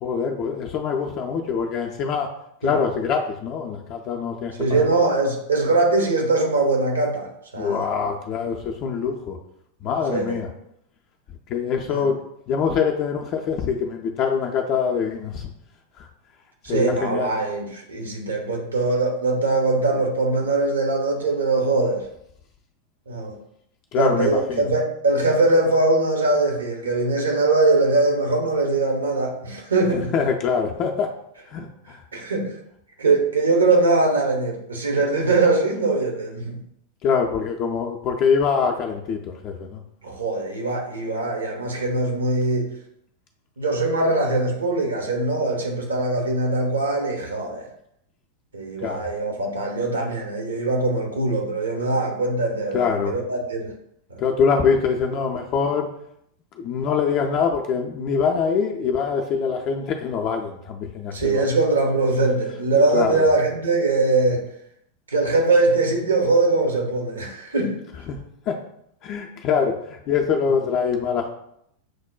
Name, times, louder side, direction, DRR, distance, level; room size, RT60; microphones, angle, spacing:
voice 1, 0.0-2.3 2.6-4.9 7.6-9.4 9.8-10.5 11.5-12.2 12.5-15.5 16.0-16.1 16.7-17.3 23.9-24.7 29.9-31.1 31.5-32.0 37.0-39.8 48.8-49.1 52.7-53.2 54.2-55.9 56.6-61.5 62.7-63.3 68.1-68.2 68.5-68.6 69.0-71.3, left 6 dB, 40° left, 2 dB, 0.3 m, -24 dB
voice 2, 4.6-7.9 10.1-10.4 11.9-12.1 16.6-22.0 23.1-23.3 24.0-30.1 32.1-32.5 33.0-36.6 40.0-42.7 43.6-47.7 48.5-53.7 54.1-54.2 61.1-64.4 65.1-67.7, right 2 dB, 70° right, 1 dB, 0.7 m, -21 dB
6.2 x 2.1 x 2.3 m, 0.74 s
figure-of-eight pair, 90°, 0 cm